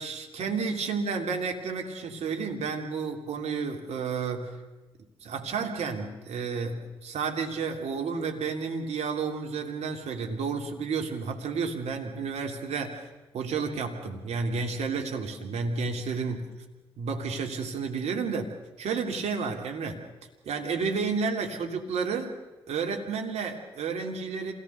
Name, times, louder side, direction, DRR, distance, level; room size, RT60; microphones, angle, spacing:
voice 1, 0.0-4.5 5.2-13.1 13.3-16.5 17.0-20.0 20.4-22.3 22.7-24.5, right 5 dB, 60° right, 3 dB, 3.0 m, -31 dB
27.0 x 18.0 x 6.8 m, 1.1 s
hypercardioid pair, 40°, 13 cm